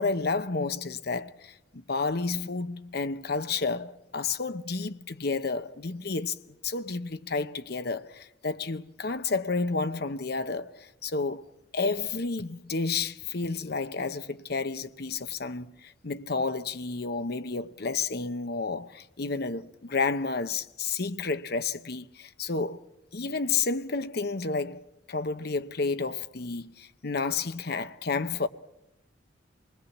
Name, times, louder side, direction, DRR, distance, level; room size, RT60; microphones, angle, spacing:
voice 1, 0.0-11.4 11.7-22.8 23.1-28.5, left 4 dB, 60° left, 0.9 m, -31 dB
26.5 x 20.5 x 7.3 m
head